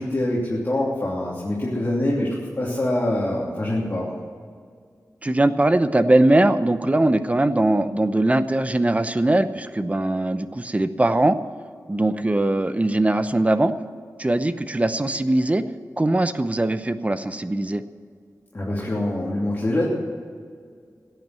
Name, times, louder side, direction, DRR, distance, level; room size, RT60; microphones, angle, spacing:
voice 1, 0.0-4.2 18.5-19.8, left 1 dB, 30° left, -6 dB, 3.0 m, -24 dB
voice 2, 5.2-11.4 11.9-13.7 14.2-15.6 16.0-17.8, right 1 dB, 20° right, 11 dB, 0.8 m, -21 dB
16.5 x 9.1 x 7.6 m, 2.1 s
wide cardioid pair, 100°, 6 cm